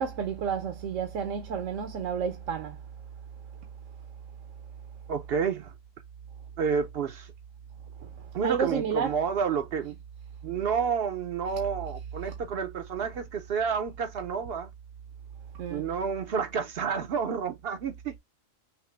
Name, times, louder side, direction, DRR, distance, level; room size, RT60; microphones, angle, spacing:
voice 1, 0.0-2.8 8.0-9.2 12.3-12.4 15.5-15.8, right 7 dB, 75° right, 1.1 m, -31 dB
voice 2, 5.1-5.7 6.6-7.3 8.3-10.0 10.4-14.7 15.7-18.2, right 6 dB, 60° right, 0.7 m, -30 dB
5.8 x 2.0 x 3.2 m
omnidirectional pair, 1.3 m